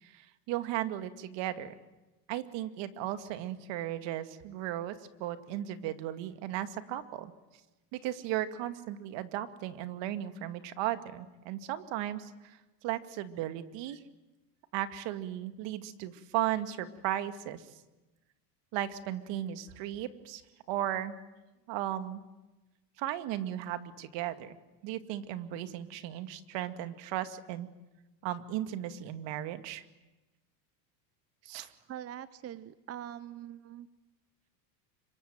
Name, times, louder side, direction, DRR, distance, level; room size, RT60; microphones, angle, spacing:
voice 1, 0.0-1.7 2.3-4.9 5.2-7.3 7.9-12.6 12.8-14.0 14.7-17.7 18.7-20.4 20.7-21.1 21.7-22.2 23.0-24.6 24.8-27.7 28.2-29.8 31.4-31.7, right 12 dB, 60° right, 10 dB, 2.2 m, -36 dB
voice 2, 31.9-33.9, right 11 dB, 30° right, 15 dB, 0.9 m, -43 dB
26.0 x 24.0 x 9.1 m, 1.0 s
supercardioid pair, 120°, 50 cm